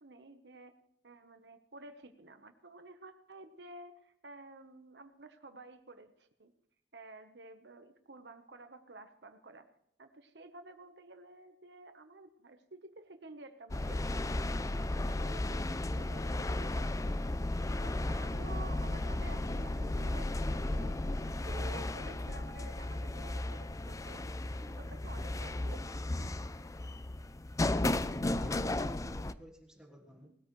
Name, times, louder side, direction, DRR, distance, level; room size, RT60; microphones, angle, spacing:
voice 1, 0.0-0.7 1.0-6.5 6.9-9.7 10.0-17.4 17.8-21.2 21.5-24.2 24.6-26.2, right 2 dB, 65° right, 8 dB, 1.1 m, -52 dB
sound 1, 13.7-29.3, left 2 dB, 20° left, 0.4 m, -34 dB
voice 2, 27.9-30.3, equal, 5° right, 2 dB, 1.5 m, -53 dB
19.5 x 13.5 x 3.2 m, 0.72 s
head